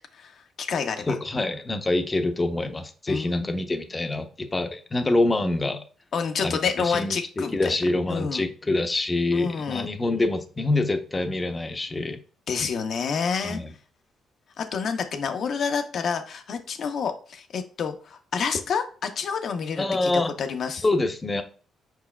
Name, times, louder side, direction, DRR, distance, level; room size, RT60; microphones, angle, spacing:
voice 1, 0.1-1.2 3.1-3.6 6.1-7.7 8.1-8.4 9.3-9.9 12.5-13.6 14.6-20.1 20.4-20.8, left 6 dB, 60° left, 6 dB, 0.7 m, -28 dB
voice 2, 1.1-5.8 6.4-6.6 6.8-12.2 13.4-13.7 19.8-20.3 20.8-21.4, left 2 dB, 25° left, 7 dB, 0.6 m, -25 dB
5.0 x 4.6 x 2.2 m, 0.39 s
cardioid pair, 90°, 0 cm